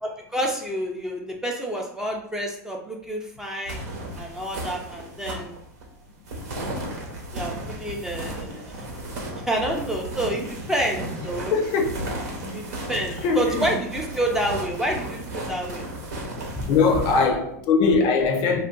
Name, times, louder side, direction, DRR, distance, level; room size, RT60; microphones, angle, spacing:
voice 1, 0.0-3.8 4.2-5.5 6.5-6.7 7.3-8.6 9.5-11.6 12.5-15.8 16.5-16.7, right 1 dB, 5° right, 0.5 m, -28 dB
sound 1, 3.7-17.3, right 1 dB, 70° right, 0.9 m, -34 dB
voice 2, 11.5-11.9 12.4-12.5 13.2-13.7 16.7-18.6, left 4 dB, 50° left, 0.5 m, -21 dB
2.4 x 2.2 x 3.7 m
hypercardioid pair, 110°, 9 cm